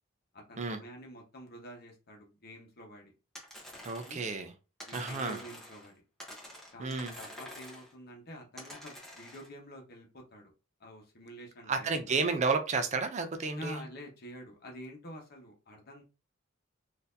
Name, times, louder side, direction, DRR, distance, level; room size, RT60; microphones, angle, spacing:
voice 1, 0.3-3.1 4.0-4.2 4.9-6.0 6.7-10.5 10.8-12.1 13.6-16.0, equal, 50° left, 1.0 m, -47 dB
sound 1, 3.3-4.3 4.8-5.9 6.2-7.9 8.6-9.5, left 1 dB, ahead, 0.9 m, -48 dB
voice 2, 3.8-4.5 4.9-5.4 6.8-7.1 11.7-13.8, right 4 dB, 35° right, 0.4 m, -31 dB
4.0 x 2.6 x 2.6 m
head